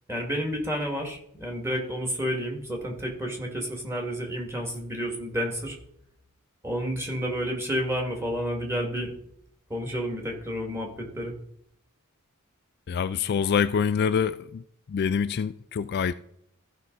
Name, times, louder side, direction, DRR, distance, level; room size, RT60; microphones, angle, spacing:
voice 1, 0.1-5.8 6.6-9.1 9.7-11.3, equal, 10° right, 2.1 m, -30 dB
voice 2, 12.9-14.6 14.9-16.1, left 6 dB, 50° left, 0.3 m, -25 dB
14.5 x 5.6 x 4.0 m
head